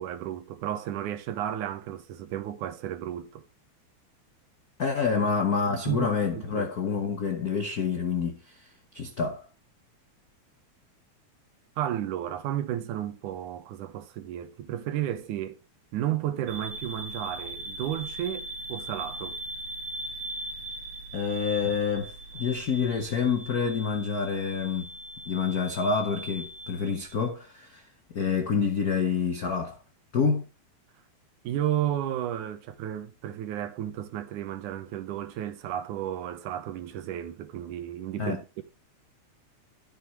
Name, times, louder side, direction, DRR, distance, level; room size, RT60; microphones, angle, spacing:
voice 1, 0.0-3.4 5.1-5.3 5.7-6.7 11.8-15.6 15.9-19.4 31.4-38.6, right 11 dB, 90° right, 2.6 m, -33 dB
voice 2, 4.8-8.7 8.9-9.5 21.1-24.9 25.3-27.9 28.1-29.8 30.1-30.4 38.2-38.4, left 5 dB, 70° left, 0.8 m, -27 dB
sound 1, 16.5-27.3, right 1 dB, 60° right, 2.0 m, -39 dB
12.5 x 7.8 x 3.2 m
omnidirectional pair, 3.5 m